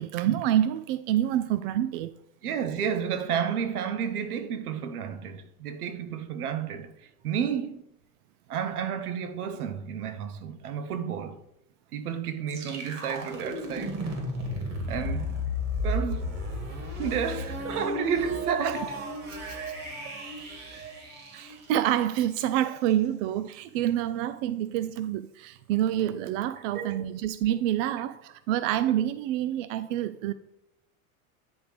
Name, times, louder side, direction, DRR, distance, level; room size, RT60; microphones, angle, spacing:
voice 1, 0.0-2.1 18.6-18.7 19.3-19.6 21.3-30.3, right 11 dB, 60° right, 0.5 m, -27 dB
voice 2, 2.4-6.9 7.2-7.8 8.5-11.4 11.9-14.0 14.9-15.3 15.8-16.4 17.0-19.0 20.0-20.2 26.7-27.1 28.0-28.1, right 7 dB, 85° right, 0.9 m, -31 dB
sound 1, 12.5-22.3, left 1 dB, 35° right, 2.4 m, -34 dB
9.6 x 3.5 x 4.8 m
hypercardioid pair, 100°, 44 cm